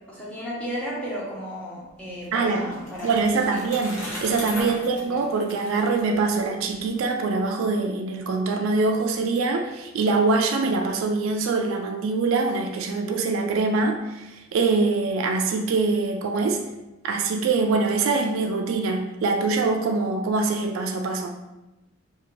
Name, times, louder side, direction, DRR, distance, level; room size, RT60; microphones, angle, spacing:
voice 1, 0.1-3.1 3.5-3.6 4.6-4.9, equal, 5° left, -7 dB, 0.8 m, -34 dB
Bicycle, 1.9-7.0, left 1 dB, 85° left, 0.8 m, -38 dB
voice 2, 2.3-2.7 3.0-16.6 17.0-21.3, right 3 dB, 70° right, 4 dB, 0.3 m, -24 dB
2.7 x 2.4 x 3.0 m, 1.0 s
head